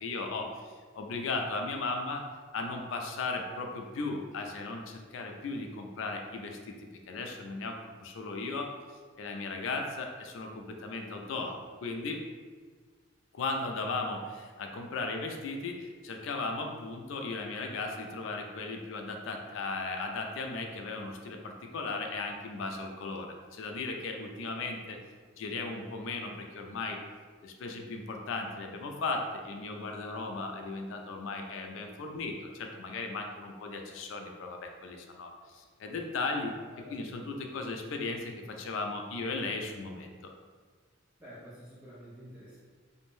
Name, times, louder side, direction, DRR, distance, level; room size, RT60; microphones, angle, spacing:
voice 1, 0.0-0.6 1.0-2.2 2.5-6.8 7.1-8.7 9.2-12.2 13.3-25.0 25.4-27.0 27.4-40.3, left 3 dB, 65° left, 3 dB, 0.3 m, -36 dB
voice 2, 41.2-42.6, equal, 10° right, -10 dB, 0.5 m, -49 dB
2.5 x 2.1 x 3.0 m, 1.5 s
head